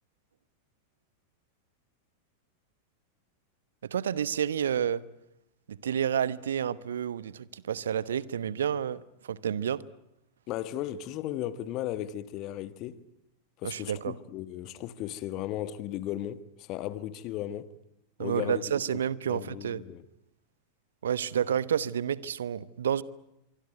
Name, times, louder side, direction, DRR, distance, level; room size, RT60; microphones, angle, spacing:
voice 1, 3.8-5.0 5.7-9.0 9.3-9.8 13.6-14.2 18.2-19.8 21.0-23.0, right 8 dB, 65° right, 1.0 m, -30 dB
voice 2, 10.5-13.0 13.6-17.7 18.2-18.6 18.9-19.0 19.3-20.0, left 12 dB, 40° left, 1.6 m, -36 dB
25.0 x 24.5 x 9.3 m
figure-of-eight pair, 90°, 0 cm